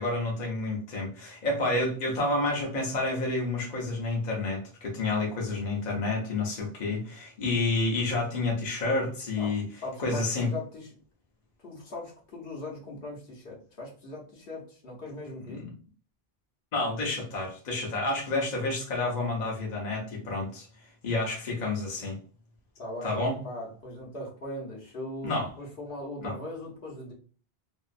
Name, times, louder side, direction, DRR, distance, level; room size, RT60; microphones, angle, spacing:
voice 1, 0.0-9.6 10.0-10.5 15.5-15.7 16.7-20.7 21.0-22.2 23.0-23.3 25.2-25.5 26.2-26.3, left 2 dB, 50° left, -1 dB, 0.8 m, -29 dB
voice 2, 9.4-10.9 11.6-15.6 22.8-27.1, left 1 dB, 65° left, -2 dB, 1.1 m, -40 dB
2.7 x 2.3 x 2.5 m, 0.41 s
omnidirectional pair, 1.0 m